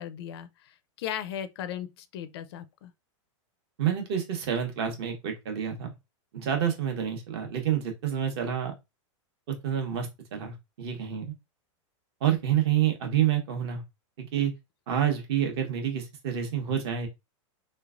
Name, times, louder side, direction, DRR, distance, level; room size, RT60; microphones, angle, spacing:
voice 1, 0.0-2.9, left 10 dB, 50° left, 0.4 m, -37 dB
voice 2, 3.8-5.9 6.3-8.7 9.5-11.3 12.2-13.8 14.2-14.5 14.9-17.1, right 9 dB, 50° right, 1.1 m, -28 dB
3.2 x 3.1 x 2.4 m
supercardioid pair, 160°, 17 cm